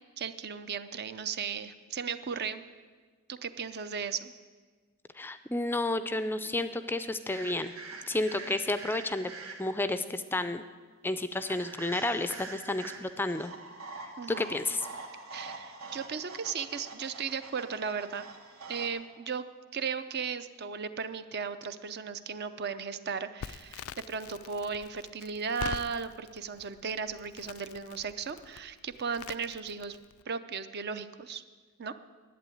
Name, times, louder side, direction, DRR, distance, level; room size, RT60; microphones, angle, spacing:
voice 1, 0.2-2.6 3.3-4.3 14.2-14.5 15.3-18.2 18.7-19.4 19.7-30.0 30.3-31.4 31.8-31.9, right 6 dB, 50° right, 11 dB, 0.6 m, -36 dB
voice 2, 5.2-7.7 8.1-9.3 9.6-10.6 11.0-13.5 14.0-14.9, left 2 dB, 10° left, 11 dB, 0.4 m, -31 dB
sound 1, 7.3-9.9 11.4-18.9, right 3 dB, 75° right, 1.6 m, -45 dB
Crackle, 23.4-30.2, left 7 dB, 85° left, 0.4 m, -45 dB
11.0 x 8.6 x 9.2 m, 1.5 s
head